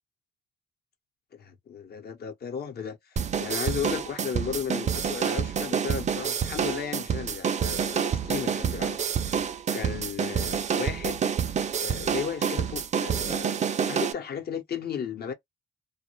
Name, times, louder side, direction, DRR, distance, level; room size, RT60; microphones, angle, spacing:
voice 1, 1.3-9.0 9.2-11.2 11.8-15.3, left 7 dB, 50° left, 0.8 m, -35 dB
sound 1, 3.2-14.1, right 7 dB, 35° right, 0.4 m, -28 dB
2.2 x 2.1 x 2.9 m
cardioid pair, 90°, 20 cm